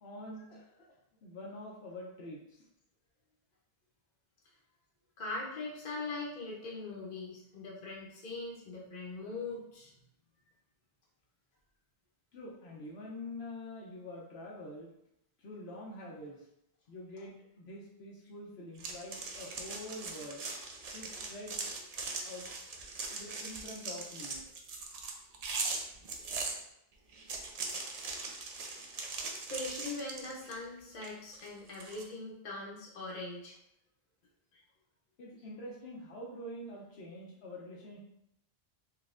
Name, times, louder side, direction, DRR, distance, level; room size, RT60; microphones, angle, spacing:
voice 1, 0.0-2.7 12.3-14.9 15.4-16.5 16.9-20.4 20.9-21.7 22.2-22.5 23.1-24.4 35.2-38.0, left 1 dB, 90° left, -3 dB, 1.0 m, -46 dB
voice 2, 5.2-9.9 28.2-28.4 29.3-33.6 34.5-34.6, left 2 dB, 50° left, -4 dB, 0.8 m, -41 dB
sound 1, 18.8-26.6 27.1-30.6 31.0-32.0, right 3 dB, 50° right, 0.5 m, -40 dB
4.0 x 3.2 x 2.4 m, 0.79 s
omnidirectional pair, 1.0 m